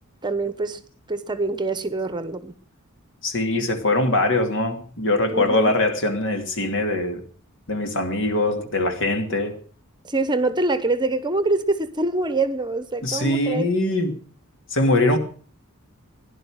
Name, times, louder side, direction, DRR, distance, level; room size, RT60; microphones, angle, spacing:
voice 1, 0.2-0.8 1.1-2.5 5.3-5.8 10.0-13.7, right 2 dB, 20° right, 1.0 m, -25 dB
voice 2, 3.2-7.2 7.7-9.6 13.0-14.1 14.7-15.2, left 2 dB, 60° left, 2.7 m, -22 dB
16.5 x 11.0 x 6.4 m
head